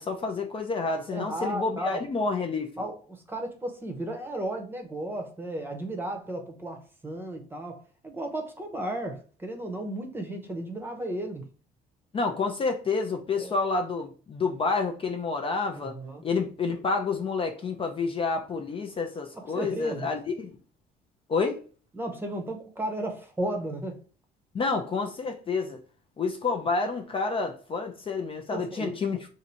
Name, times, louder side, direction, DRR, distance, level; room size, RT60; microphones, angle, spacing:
voice 1, 0.0-2.7 12.1-16.0 16.2-20.6 21.3-21.6 24.5-25.8 26.2-29.3, left 4 dB, 30° left, 0.5 m, -29 dB
voice 2, 1.1-2.0 2.8-11.4 13.4-13.5 15.8-16.3 19.3-20.1 21.9-24.0 28.5-28.9, right 1 dB, 10° right, 0.8 m, -34 dB
2.7 x 2.6 x 4.3 m
cardioid pair, 110°, 17 cm